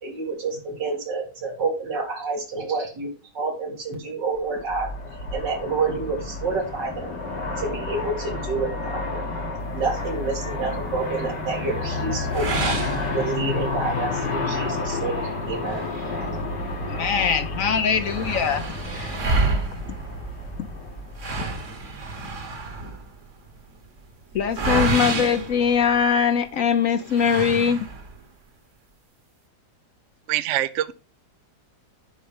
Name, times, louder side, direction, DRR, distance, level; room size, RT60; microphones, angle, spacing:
voice 1, 0.0-3.1 3.3-4.9 5.3-7.1 7.6-9.2 9.7-12.7 13.1-15.9, right 3 dB, 90° right, 3.2 m, -28 dB
Aircraft, 4.5-21.7, left 3 dB, 80° left, 2.8 m, -30 dB
sound 1, 12.3-13.8 14.2-14.3 14.8-14.9 15.7-17.0 17.3-17.4 17.6-26.4 27.1-28.2, right 3 dB, 45° right, 1.5 m, -29 dB
voice 2, 16.9-18.6 18.9-19.2 24.3-27.9, left 7 dB, 60° left, 0.9 m, -22 dB
voice 3, 30.3-30.9, right 13 dB, 65° right, 0.7 m, -24 dB
10.0 x 4.6 x 5.2 m
omnidirectional pair, 1.8 m